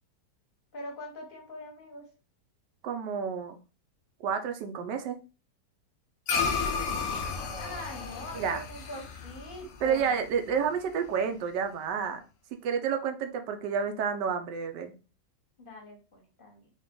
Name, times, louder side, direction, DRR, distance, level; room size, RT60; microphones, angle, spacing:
voice 1, 0.7-2.1 7.6-10.2 15.6-16.7, left 1 dB, 40° left, 1 dB, 0.9 m, -43 dB
voice 2, 2.8-3.6 4.2-5.2 8.3-8.6 9.8-12.2 12.6-14.9, right 6 dB, 85° right, 6 dB, 1.2 m, -30 dB
sound 1, 6.3-10.9, left 5 dB, 75° left, 0.6 m, -33 dB
3.9 x 2.3 x 3.7 m, 0.34 s
omnidirectional pair, 1.9 m